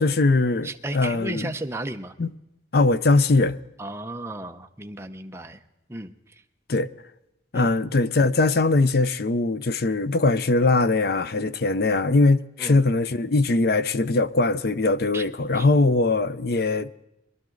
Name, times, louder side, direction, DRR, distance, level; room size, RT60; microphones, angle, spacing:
voice 1, 0.0-1.5 2.2-2.3 2.7-3.6 6.7-6.9 7.5-16.9, left 3 dB, 55° left, 0.6 m, -21 dB
voice 2, 0.6-2.1 3.8-5.6 5.9-6.1 7.5-7.7 12.6-12.8 15.1-15.3 15.5-15.7, right 1 dB, 15° right, 0.7 m, -34 dB
22.5 x 12.0 x 3.9 m
head